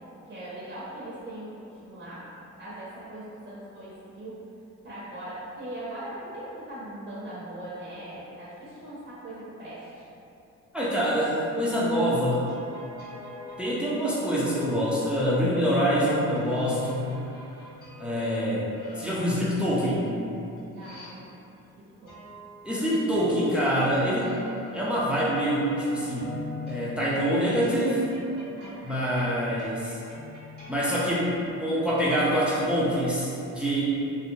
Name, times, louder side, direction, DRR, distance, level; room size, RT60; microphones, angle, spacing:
voice 1, 0.2-2.3 2.6-4.4 4.8-10.1 20.7-21.4 22.0-22.2 28.6-29.3, right 1 dB, 40° right, -9 dB, 0.7 m, -40 dB
voice 2, 10.7-12.5 13.6-17.1 18.0-18.7 18.9-20.1 22.6-24.3 24.7-26.3 26.7-28.0 28.8-30.0 30.7-33.8, equal, 5° right, -8 dB, 0.5 m, -25 dB
sound 1, 12.1-14.7 15.9-21.6 22.1-31.2, left 4 dB, 35° left, 1.4 m, -43 dB
2.7 x 2.1 x 2.7 m, 2.7 s
cardioid pair, 90°, 30 cm